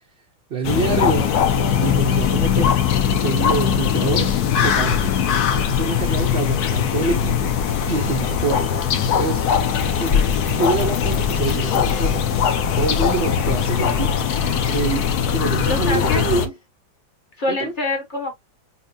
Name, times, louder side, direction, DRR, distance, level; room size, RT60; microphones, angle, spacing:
voice 1, 0.5-2.8 3.2-5.2 5.5-7.5 7.9-8.8 9.2-9.5 10.0-12.3 12.8-14.2 14.7-16.5 17.5-17.7, right 4 dB, 60° right, 0.6 m, -26 dB
sound 1, 0.6-16.5, left 8 dB, 65° left, 1.2 m, -20 dB
voice 2, 15.6-16.2 17.4-18.3, left 2 dB, 30° left, 1.1 m, -25 dB
5.8 x 2.2 x 2.6 m
omnidirectional pair, 2.0 m